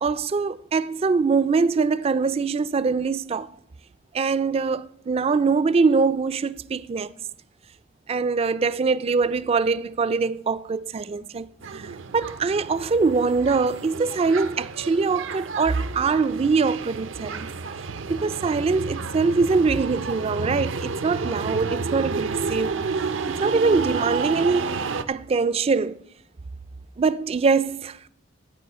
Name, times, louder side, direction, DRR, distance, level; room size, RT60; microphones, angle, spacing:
voice 1, 0.0-3.5 4.1-7.1 8.1-17.5 18.1-22.8 23.3-24.8 25.1-26.0 27.0-28.0, right 4 dB, 30° right, 0.3 m, -23 dB
sound 1, 11.6-25.0, right 4 dB, 80° right, 0.7 m, -31 dB
14.0 x 4.9 x 8.6 m
head